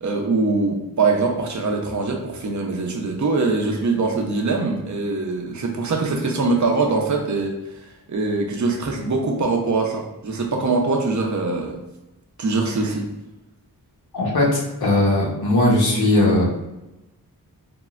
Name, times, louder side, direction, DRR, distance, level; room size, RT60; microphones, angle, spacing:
voice 1, 0.0-11.8 12.4-13.1, right 3 dB, 50° right, 1 dB, 0.6 m, -23 dB
voice 2, 14.1-16.5, left 1 dB, 85° left, -4 dB, 1.0 m, -18 dB
3.6 x 2.1 x 2.4 m, 0.96 s
wide cardioid pair, 90°, 36 cm